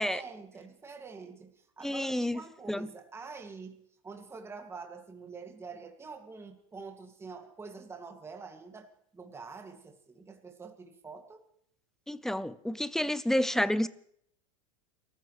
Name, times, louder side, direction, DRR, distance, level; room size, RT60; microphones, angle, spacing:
voice 1, 0.0-11.4, right 4 dB, 15° right, 2.3 m, -46 dB
voice 2, 1.8-2.4 2.7-2.9 12.1-13.9, left 1 dB, 5° left, 0.7 m, -29 dB
30.0 x 14.5 x 3.3 m
hypercardioid pair, 110°, 16 cm